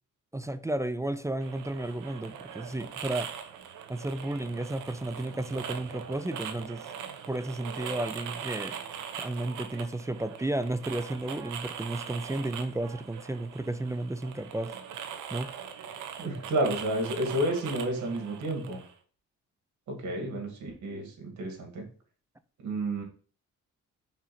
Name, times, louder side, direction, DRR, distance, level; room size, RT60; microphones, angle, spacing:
voice 1, 0.3-3.3 3.9-6.9 7.3-8.8 9.2-14.7 15.3-15.5, right 1 dB, 10° right, 0.4 m, -33 dB
sound 1, 1.4-18.9, right 8 dB, 85° right, 0.9 m, -41 dB
voice 2, 16.2-18.8 19.9-21.8 22.6-23.0, right 1 dB, 70° right, 2.4 m, -31 dB
5.4 x 4.6 x 4.3 m
cardioid pair, 90°, 30 cm